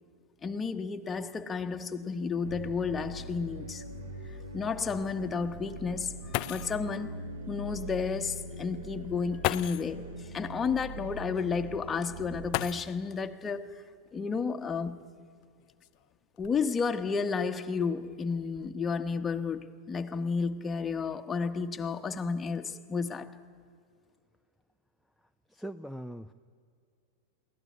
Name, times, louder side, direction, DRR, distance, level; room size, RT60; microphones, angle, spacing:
voice 1, 0.4-3.8 4.3-13.7 14.1-14.9 16.4-23.3, left 5 dB, 20° left, 1.2 m, -32 dB
sound 1, 2.4-2.5 2.9-3.0 3.6-3.7 6.0-6.1 6.3-6.9 8.2-8.3 9.4-10.0 12.5-13.2 14.6-14.7 15.4-16.9 17.6-17.9 18.3-18.7, left 18 dB, 50° left, 0.5 m, -36 dB
sound 2, 2.4-12.7, right 1 dB, 80° right, 2.4 m, -42 dB
voice 2, 25.5-26.3, right 1 dB, ahead, 0.5 m, -40 dB
22.0 x 16.0 x 9.5 m
hypercardioid pair, 100°, 0 cm